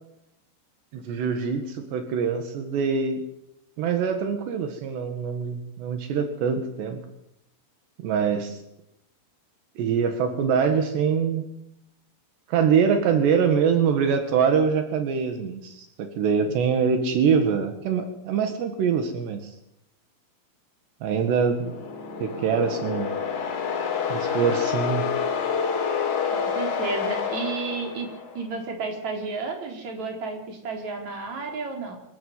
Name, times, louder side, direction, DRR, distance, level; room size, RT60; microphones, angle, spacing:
voice 1, 0.9-3.2 3.8-7.0 8.0-8.6 9.8-11.4 12.5-19.6 21.0-21.7 22.2-23.1 24.1-25.0, right 6 dB, 80° right, 6 dB, 4.0 m, -24 dB
sound 1, 21.4-28.4, left 6 dB, 65° left, 5.2 m, -28 dB
voice 2, 26.3-28.1 28.4-31.9, right 4 dB, 40° right, 3 dB, 5.3 m, -32 dB
25.5 x 14.5 x 9.6 m, 0.82 s
omnidirectional pair, 4.9 m